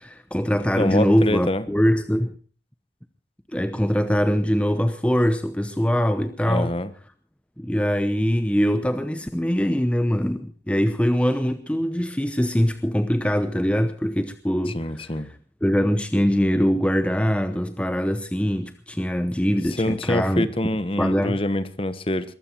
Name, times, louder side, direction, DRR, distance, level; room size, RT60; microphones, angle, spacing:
voice 1, 0.0-2.3 3.5-6.7 7.6-15.3 15.6-20.5 21.0-21.4, equal, 5° left, 0.8 m, -22 dB
voice 2, 0.7-1.6 6.4-6.9 14.7-15.3 19.8-22.3, left 1 dB, 30° left, 1.2 m, -25 dB
22.0 x 14.5 x 4.5 m
head